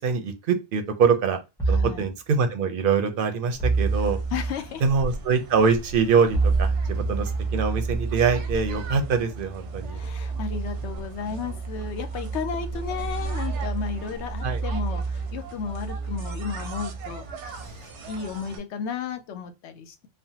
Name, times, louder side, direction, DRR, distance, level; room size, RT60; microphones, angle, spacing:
voice 1, 0.0-1.4 1.7-4.2 4.8-10.0 14.4-14.6, right 5 dB, 60° right, 0.6 m, -24 dB
sound 1, 1.6-2.0 3.6-4.5 6.3-17.7, right 4 dB, 5° left, 0.7 m, -29 dB
voice 2, 1.7-2.1 4.3-4.8 9.9-20.1, left 6 dB, 75° left, 0.8 m, -34 dB
sound 2, 3.5-18.6, right 2 dB, 90° right, 0.9 m, -39 dB
3.2 x 2.0 x 2.7 m
omnidirectional pair, 1.2 m